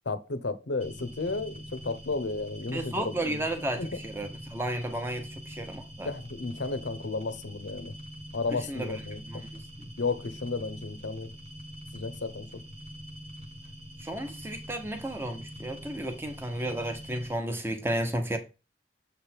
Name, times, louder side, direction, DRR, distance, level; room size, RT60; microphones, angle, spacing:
voice 1, 0.1-3.4 3.8-4.0 6.0-7.9 8.3-9.4 10.0-11.3 11.9-12.6, left 3 dB, 75° left, 0.8 m, -33 dB
sound 1, 0.8-17.4, equal, 35° right, 1.1 m, -44 dB
voice 2, 2.7-6.1 8.5-8.9 9.3-9.9 14.0-18.4, right 1 dB, 15° right, 0.9 m, -33 dB
7.3 x 3.4 x 4.5 m
head